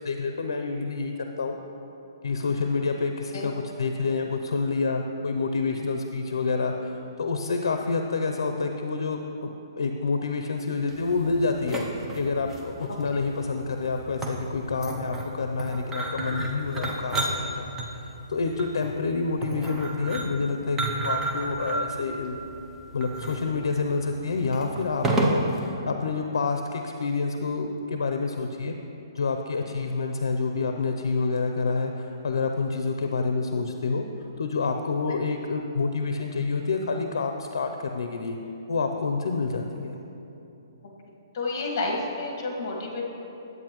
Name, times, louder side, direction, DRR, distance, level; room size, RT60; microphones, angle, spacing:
voice 1, 0.0-1.6 2.2-3.5 3.8-11.8 12.1-17.7 18.3-22.4 22.9-28.7 29.1-38.4 38.7-40.0, left 4 dB, 85° left, 5 dB, 0.5 m, -28 dB
sound 1, 10.9-25.6, right 2 dB, 10° right, 0.5 m, -32 dB
voice 2, 41.3-43.0, left 3 dB, 40° left, -1 dB, 1.6 m, -30 dB
10.5 x 8.1 x 3.0 m, 2.9 s
hypercardioid pair, 170°, 2 cm